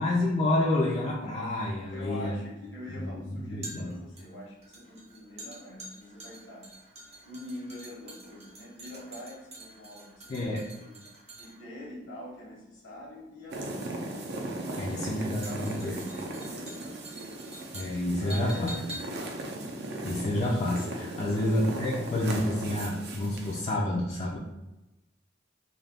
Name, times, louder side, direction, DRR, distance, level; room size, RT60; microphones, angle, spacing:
voice 1, 0.0-2.3 2.9-3.9 10.3-10.7 14.8-15.9 17.7-18.7 20.0-24.4, left 1 dB, 35° left, -5 dB, 0.3 m, -29 dB
sound 1, 1.5-20.7 21.0-21.1, right 1 dB, 35° right, 0.8 m, -47 dB
voice 2, 1.9-6.7 7.2-11.0 11.4-14.0 14.5-17.5 18.2-19.4 21.1-21.6, left 1 dB, 70° left, -4 dB, 0.9 m, -44 dB
sound 2, 13.5-23.6, right 2 dB, 60° right, 0.4 m, -38 dB
2.4 x 2.3 x 3.3 m, 1.0 s
head